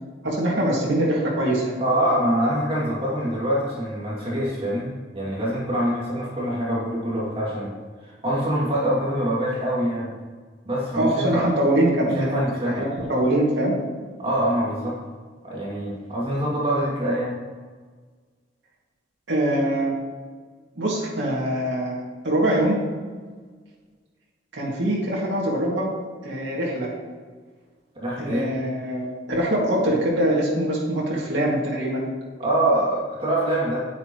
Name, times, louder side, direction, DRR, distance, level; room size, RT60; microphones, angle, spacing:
voice 1, 0.2-1.7 10.9-12.3 12.6-13.7 19.3-20.0 20.8-22.0 22.2-22.8 24.5-25.9 26.2-26.9 28.2-32.1, right 1 dB, 75° right, -5 dB, 2.2 m, -23 dB
voice 2, 1.8-7.7 8.0-10.1 10.6-11.5 12.2-12.9 14.2-15.0 15.4-17.4 28.0-28.5 32.4-33.8, right 1 dB, 30° right, -6 dB, 2.5 m, -24 dB
9.6 x 9.1 x 3.1 m, 1.5 s
head